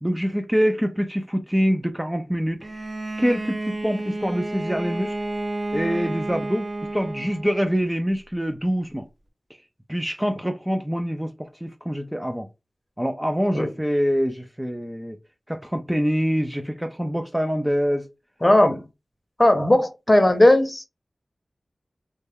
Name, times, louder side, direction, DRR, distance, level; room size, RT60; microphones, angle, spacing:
voice 1, 0.0-2.9 3.2-5.2 5.7-6.7 6.9-9.1 9.9-12.5 13.0-15.2 15.5-18.1, equal, 10° right, 0.4 m, -25 dB
Bowed string instrument, 2.6-7.7, right 2 dB, 40° right, 0.9 m, -31 dB
voice 2, 18.4-18.8 19.4-20.8, left 1 dB, 25° left, 0.7 m, -17 dB
3.2 x 2.1 x 3.4 m
wide cardioid pair, 70°, 0 cm